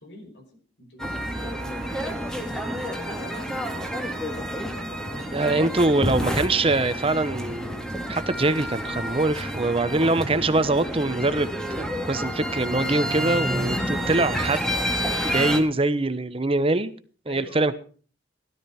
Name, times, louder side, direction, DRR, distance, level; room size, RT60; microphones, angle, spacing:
voice 1, 0.0-2.3 2.8-6.1 9.9-10.2 17.3-17.7, left 1 dB, 75° left, 4 dB, 5.4 m, -45 dB
sound 1, 1.0-15.6, equal, 5° left, 2.3 m, -29 dB
voice 2, 5.3-14.7 15.2-16.9 17.3-17.7, right 2 dB, 30° right, 12 dB, 1.0 m, -23 dB
17.0 x 12.5 x 4.4 m, 0.41 s
head